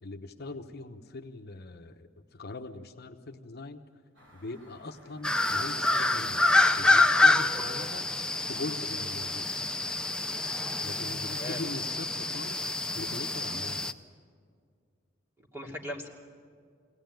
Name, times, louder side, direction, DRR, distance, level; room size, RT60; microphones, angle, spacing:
voice 1, 0.0-3.8 4.3-6.4 6.8-8.1 8.5-9.5 10.8-13.9, left 2 dB, 55° left, 5 dB, 0.9 m, -41 dB
sound 1, 4.1-10.6, right 1 dB, 75° right, 5.3 m, -57 dB
sound 2, 5.2-13.9, left 2 dB, 5° left, 0.6 m, -27 dB
voice 2, 11.3-11.6 15.4-16.1, left 1 dB, 15° right, -1 dB, 2.9 m, -39 dB
23.0 x 17.5 x 9.2 m, 2.1 s
head